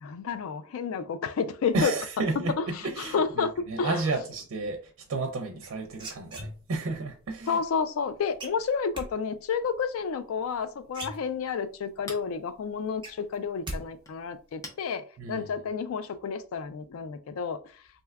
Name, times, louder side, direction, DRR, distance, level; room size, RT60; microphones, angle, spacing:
voice 1, 0.0-1.9 2.6-2.7 3.0-4.0 7.5-17.6, left 6 dB, 80° left, 0.3 m, -30 dB
voice 2, 1.7-7.6 15.2-15.5, right 3 dB, 90° right, 0.5 m, -32 dB
sound 1, 5.6-6.9 8.4-9.1 10.5-10.6 10.9-11.7 12.1-12.2 12.6-13.8 14.1-14.5, right 1 dB, 20° right, 0.7 m, -39 dB
Chink clink, 10.8-16.3, left 1 dB, 15° left, 0.5 m, -51 dB
3.3 x 2.7 x 2.2 m
head